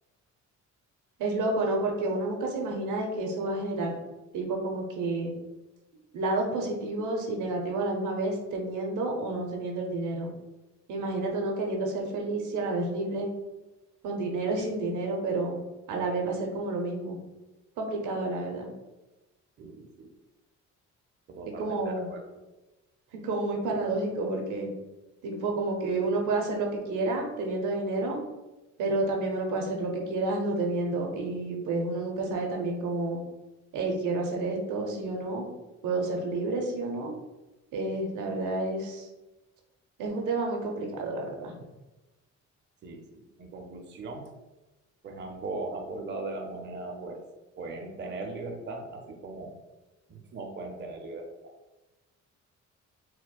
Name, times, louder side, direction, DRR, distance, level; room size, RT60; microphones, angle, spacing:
voice 1, 1.2-4.0 4.3-5.3 6.1-10.3 10.9-13.3 14.0-15.6 15.9-17.2 17.8-18.7 21.6-22.1 23.1-24.7 25.2-28.2 28.8-33.2 33.7-35.4 35.8-37.1 37.7-39.1 40.0-41.5, right 2 dB, 85° right, 1 dB, 0.7 m, -30 dB
voice 2, 19.6-20.1 21.3-22.3 42.8-44.3 45.0-47.2 47.6-49.6 50.1-51.5, right 2 dB, 35° right, 2 dB, 0.5 m, -39 dB
4.2 x 2.2 x 2.2 m, 1.1 s
cardioid pair, 90°, 30 cm